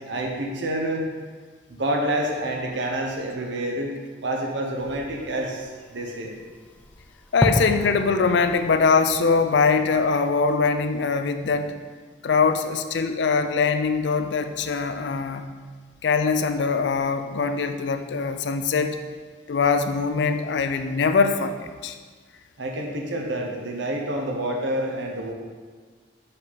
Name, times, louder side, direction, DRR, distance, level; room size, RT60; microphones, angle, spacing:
voice 1, 0.1-1.1 1.7-3.9 4.2-6.3 22.6-25.3, right 1 dB, 85° right, 1 dB, 0.8 m, -28 dB
Fireworks, 4.7-10.4, equal, 10° left, 0.3 m, -32 dB
voice 2, 7.3-11.7 12.2-15.5 16.0-19.0 19.5-21.6 21.8-21.9, left 5 dB, 75° left, 8 dB, 0.4 m, -22 dB
5.6 x 5.5 x 4.0 m, 1.5 s
head